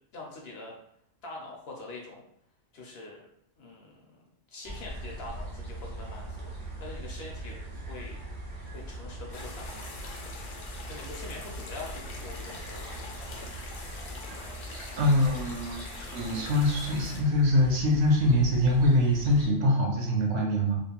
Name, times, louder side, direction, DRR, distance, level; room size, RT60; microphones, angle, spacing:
voice 1, 0.1-0.8 1.2-2.2 2.7-3.2 3.6-4.2 4.5-8.2 8.6-10.0 10.9-13.3, left 2 dB, 65° left, -1 dB, 0.7 m, -44 dB
sound 1, 4.6-19.5, right 1 dB, 30° right, 0.6 m, -41 dB
sound 2, 9.3-17.2, left 3 dB, 85° left, 1.0 m, -44 dB
voice 2, 15.0-20.8, left 1 dB, 65° right, 0 dB, 0.8 m, -24 dB
2.5 x 2.1 x 2.8 m, 0.70 s
omnidirectional pair, 1.3 m